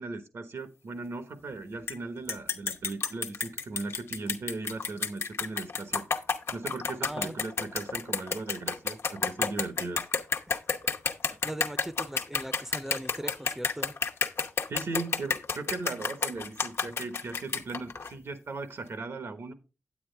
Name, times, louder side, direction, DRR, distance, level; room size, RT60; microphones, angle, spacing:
voice 1, 0.0-6.1 6.5-10.0 14.7-19.5, right 3 dB, 80° right, 1.1 m, -38 dB
sound 1, 1.9-2.0 2.3-18.1, left 5 dB, 75° left, 0.8 m, -30 dB
voice 2, 7.0-7.4 11.3-13.9, right 1 dB, 10° right, 0.5 m, -39 dB
9.1 x 8.7 x 3.3 m
wide cardioid pair, 125°, 4 cm